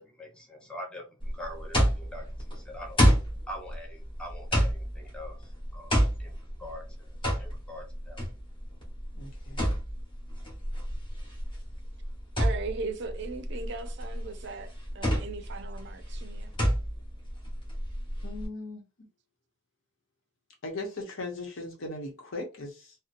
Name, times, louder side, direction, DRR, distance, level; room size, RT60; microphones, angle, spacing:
voice 1, 0.0-3.0 3.5-8.3, equal, 5° left, 0.6 m, -44 dB
sound 1, 1.2-18.5, equal, 25° left, 1.2 m, -29 dB
voice 2, 9.1-9.7 18.2-18.8 20.6-23.0, left 2 dB, 75° left, 0.9 m, -38 dB
voice 3, 12.4-16.5, right 3 dB, 55° right, 0.4 m, -38 dB
2.7 x 2.1 x 2.5 m
head